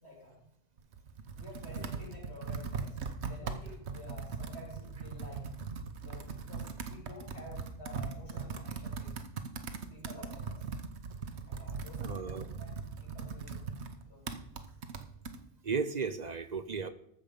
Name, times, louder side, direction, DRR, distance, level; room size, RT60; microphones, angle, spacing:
voice 1, 0.0-0.5 1.3-5.4 6.0-9.1 9.9-10.6 11.5-13.6 14.0-14.4, left 2 dB, 65° left, -4 dB, 3.7 m, -51 dB
Computer keyboard, 0.8-15.4, right 5 dB, 70° right, 1.2 m, -40 dB
voice 2, 12.0-12.5 15.6-16.9, right 5 dB, 45° right, 11 dB, 0.6 m, -34 dB
13.5 x 6.7 x 5.1 m, 0.72 s
omnidirectional pair, 1.2 m